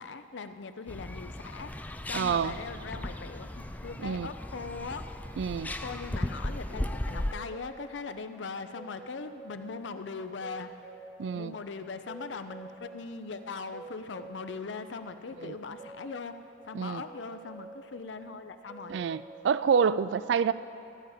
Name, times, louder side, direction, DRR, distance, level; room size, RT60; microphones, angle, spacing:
voice 1, 0.0-5.1 5.7-10.7 11.3-16.3 16.6-19.0, left 4 dB, 85° left, 10 dB, 0.6 m, -40 dB
sound 1, 0.9-7.3, left 1 dB, 10° left, 0.3 m, -36 dB
voice 2, 2.1-2.6 4.0-4.3 5.4-5.7 11.2-11.5 15.4-15.5 16.7-17.0 18.9-20.5, right 6 dB, 75° right, 16 dB, 0.3 m, -27 dB
sound 2, 6.3-19.5, right 2 dB, 25° right, 1.1 m, -50 dB
14.0 x 4.9 x 8.7 m, 2.7 s
head